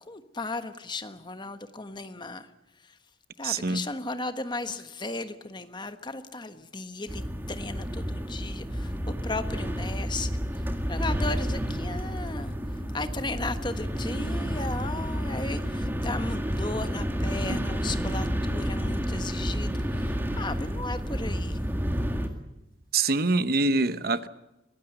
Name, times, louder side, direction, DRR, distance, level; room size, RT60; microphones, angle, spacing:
voice 1, 0.1-2.5 2.8-3.0 3.4-10.4 10.9-12.5 12.9-21.7, left 2 dB, 25° left, 9 dB, 1.3 m, -36 dB
voice 2, 3.4-3.8 22.9-24.3, right 3 dB, 55° right, 13 dB, 0.9 m, -24 dB
sound 1, 7.1-22.3, equal, 10° right, 2.0 m, -30 dB
23.5 x 19.0 x 8.0 m, 0.93 s
head